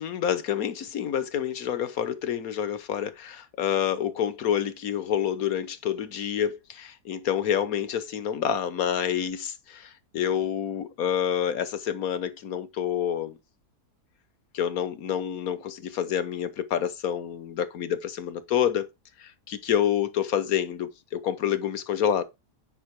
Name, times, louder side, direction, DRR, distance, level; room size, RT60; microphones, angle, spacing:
voice 1, 0.0-13.4 14.5-18.9 19.2-22.2, left 9 dB, 65° left, 1.5 m, -28 dB
9.8 x 5.5 x 4.7 m
omnidirectional pair, 1.7 m